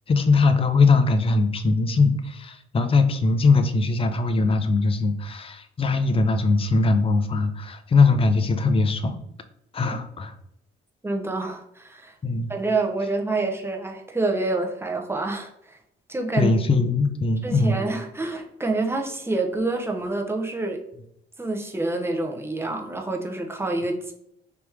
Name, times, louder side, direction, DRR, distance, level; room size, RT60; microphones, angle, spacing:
voice 1, 0.1-9.2 9.7-10.3 12.2-12.5 16.4-17.8, left 3 dB, 30° left, 8 dB, 0.5 m, -21 dB
voice 2, 11.0-12.1 12.5-15.8 16.1-16.5 17.4-20.8 21.4-24.1, right 2 dB, 10° right, 2 dB, 0.8 m, -27 dB
3.4 x 3.0 x 4.7 m, 0.76 s
cardioid pair, 90°, 20 cm